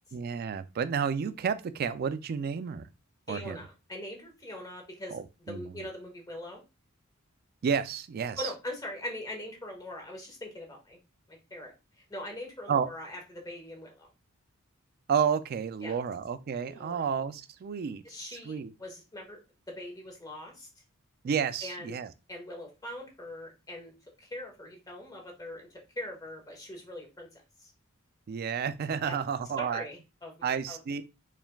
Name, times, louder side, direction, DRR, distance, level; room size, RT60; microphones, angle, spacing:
voice 1, 0.1-2.9 3.3-3.6 5.1-5.7 7.6-8.5 12.7-12.9 15.1-18.0 18.3-18.7 21.2-22.1 28.3-29.9 30.4-31.0, right 7 dB, 45° right, 0.3 m, -31 dB
voice 2, 3.3-5.2 5.5-6.6 8.4-11.0 11.3-14.1 15.8-15.9 16.7-17.0 18.0-19.4 19.7-20.7 21.6-22.0 22.3-23.9 24.2-27.7 29.0-29.1 29.6-30.8, left 1 dB, 20° left, 1.2 m, -42 dB
4.3 x 3.4 x 2.3 m
head